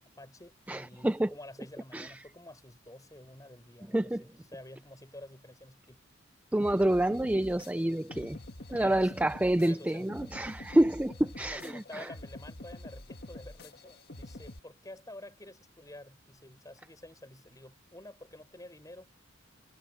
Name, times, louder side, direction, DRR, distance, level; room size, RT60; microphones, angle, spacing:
voice 1, 0.2-6.0 8.7-9.4 9.6-10.2 11.4-19.1, left 1 dB, 15° left, 7.2 m, -50 dB
voice 2, 0.7-1.3 1.9-2.1 3.9-4.2 6.5-8.4 8.7-12.1, right 1 dB, 5° right, 0.4 m, -28 dB
sound 1, 6.6-14.6, left 1 dB, 50° left, 1.8 m, -47 dB
head